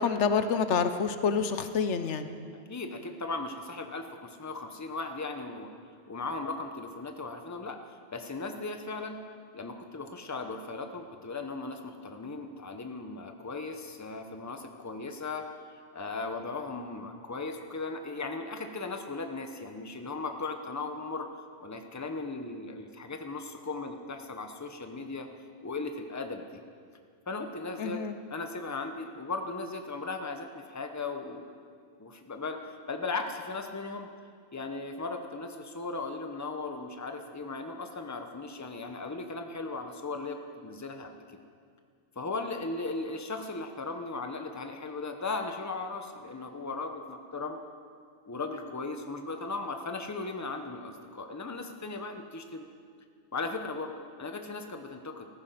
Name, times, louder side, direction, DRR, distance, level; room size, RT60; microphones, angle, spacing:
voice 1, 0.0-2.3 27.8-28.1, left 6 dB, 80° left, 9 dB, 1.1 m, -27 dB
voice 2, 2.7-5.7 6.1-9.2 9.5-15.5 15.9-21.3 21.6-25.3 25.6-26.6 27.3-28.0 28.3-31.5 32.0-34.1 34.5-41.2 42.2-47.6 48.2-52.7 53.3-53.9 54.2-55.3, left 3 dB, 15° left, 5 dB, 0.9 m, -37 dB
14.5 x 14.5 x 5.8 m, 2.2 s
omnidirectional pair, 1.2 m